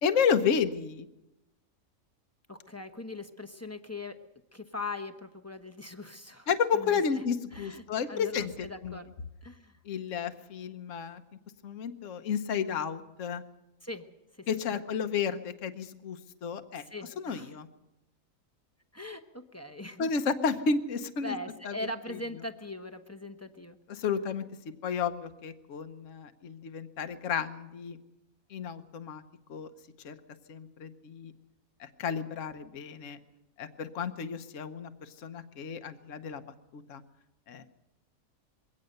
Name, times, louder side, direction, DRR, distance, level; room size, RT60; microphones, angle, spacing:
voice 1, 0.0-1.1 6.5-9.0 9.8-11.2 11.6-13.4 14.5-16.8 17.2-17.7 20.0-21.3 21.6-21.7 23.9-24.4 24.8-28.0 28.5-29.2 29.5-29.7 30.0-30.1 30.5-31.3 31.8-33.2 33.6-36.4 36.7-37.0 37.5-37.6, left 6 dB, 65° left, 9 dB, 1.3 m, -32 dB
voice 2, 2.5-4.2 4.5-6.5 6.7-7.0 7.5-9.1 9.4-9.7 13.8-14.0 14.3-14.8 16.8-17.6 18.9-20.1 21.2-23.8, left 2 dB, 15° left, 5 dB, 0.8 m, -41 dB
22.0 x 17.5 x 6.7 m, 0.93 s
omnidirectional pair, 1.5 m